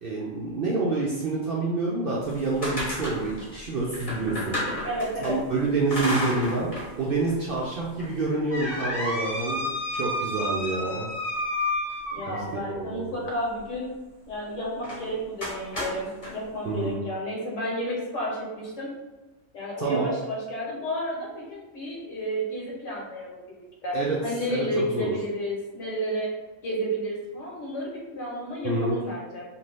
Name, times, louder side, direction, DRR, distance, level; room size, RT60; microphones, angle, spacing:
voice 1, 0.0-4.6 5.2-9.7 9.9-11.1 12.3-13.1 16.6-17.0 19.8-20.1 23.9-24.2 24.5-25.2 28.6-28.9, right 3 dB, 65° right, -4 dB, 0.6 m, -28 dB
sound 1, 2.2-5.3 5.9-6.9 7.3-7.4 8.0-12.7 14.8-15.0 15.4-16.3, left 1 dB, 30° left, 0.8 m, -31 dB
voice 2, 4.8-5.4 12.1-13.9 14.3-18.9 19.5-24.0 24.2-26.3 26.6-29.4, equal, 70° left, -4 dB, 1.2 m, -31 dB
2.6 x 2.5 x 3.2 m, 1.1 s
omnidirectional pair, 1.3 m